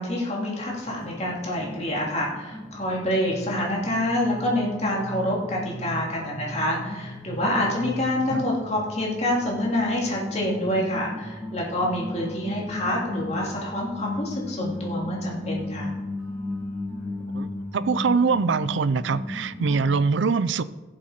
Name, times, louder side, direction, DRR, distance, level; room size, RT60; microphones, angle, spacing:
voice 1, 0.0-15.9, left 1 dB, 35° left, -3 dB, 2.8 m, -27 dB
sound 1, 0.6-19.9, left 1 dB, 10° right, 3.8 m, -35 dB
voice 2, 17.7-20.6, right 5 dB, 70° right, 16 dB, 0.5 m, -23 dB
16.5 x 7.5 x 4.4 m, 1.2 s
head